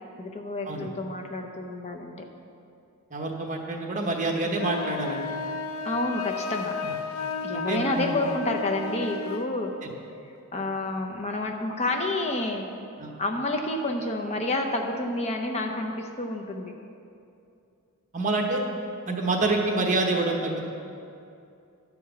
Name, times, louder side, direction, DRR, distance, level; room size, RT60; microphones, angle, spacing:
voice 1, 0.2-2.1 5.8-6.7 7.4-9.7 10.5-12.7 13.2-16.7, left 2 dB, 30° left, 3 dB, 0.7 m, -29 dB
voice 2, 3.1-5.2 6.8-6.9 7.5-8.2 9.8-9.9 10.6-10.7 13.0-13.1 18.1-18.6 19.1-20.7, right 2 dB, 35° right, 1 dB, 1.1 m, -27 dB
sound 1, 4.5-9.5, left 4 dB, 70° left, 0.6 m, -33 dB
11.0 x 4.8 x 6.8 m, 2.5 s
head